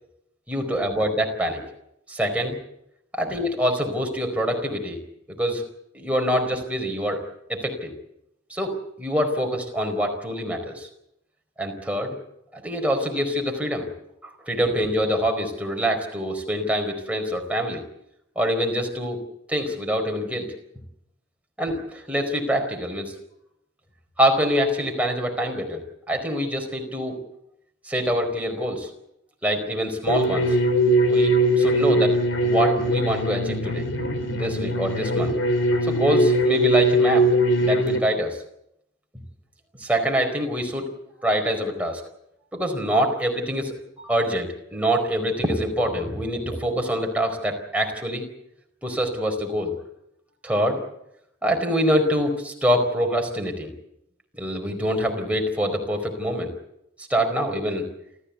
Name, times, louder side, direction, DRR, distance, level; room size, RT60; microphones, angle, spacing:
voice 1, 0.5-1.6 2.1-2.6 3.1-5.0 5.4-5.6 5.9-7.2 7.5-7.9 8.5-10.9 11.6-12.2 12.5-13.9 14.2-17.8 18.4-19.2 19.5-20.5 21.6-23.1 24.2-25.8 26.1-27.2 27.9-28.9 29.4-30.6 31.1-32.2 32.4-33.9 34.3-35.4 35.8-37.3 37.6-38.4 39.8-40.9 41.2-42.0 42.5-48.2 48.8-49.7 50.4-50.8 51.4-53.7 54.3-56.5 57.1-57.9, equal, 5° right, 2 dB, 4.4 m, -25 dB
sound 1, 30.1-38.0, right 1 dB, 85° left, 3.5 m, -21 dB
28.0 x 14.5 x 8.3 m, 0.80 s
head